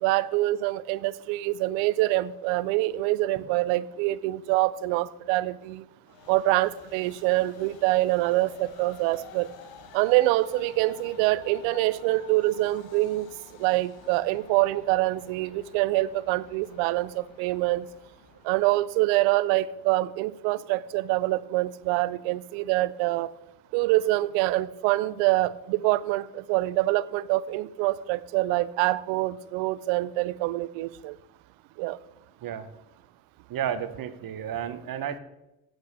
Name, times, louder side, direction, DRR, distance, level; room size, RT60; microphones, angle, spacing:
voice 1, 0.0-5.8 6.3-9.5 9.9-13.3 13.6-17.9 18.4-23.3 23.7-31.2 31.8-32.0, right 17 dB, 75° right, 0.6 m, -25 dB
Train, 6.0-19.5, left 7 dB, 70° left, 1.5 m, -51 dB
voice 2, 33.5-35.2, right 9 dB, 45° right, 1.2 m, -32 dB
8.5 x 8.0 x 6.8 m
supercardioid pair, 80°, 47 cm